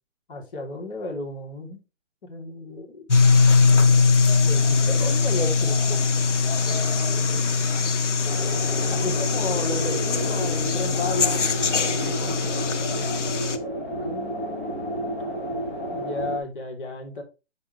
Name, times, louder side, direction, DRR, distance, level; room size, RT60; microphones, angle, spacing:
voice 1, 0.3-1.8 2.2-3.1 3.7-3.9 4.4-6.0 8.9-11.5 14.0-15.4 15.9-17.2, left 2 dB, 45° left, 3.3 m, -33 dB
sound 1, 3.1-13.6, left 4 dB, 70° left, 1.4 m, -21 dB
voice 2, 4.8-5.1 6.7-7.5 11.8-13.2, right 5 dB, 45° right, 3.7 m, -39 dB
sound 2, 8.2-16.4, right 1 dB, 10° left, 0.6 m, -31 dB
9.4 x 6.7 x 3.3 m
hypercardioid pair, 155°, 37 cm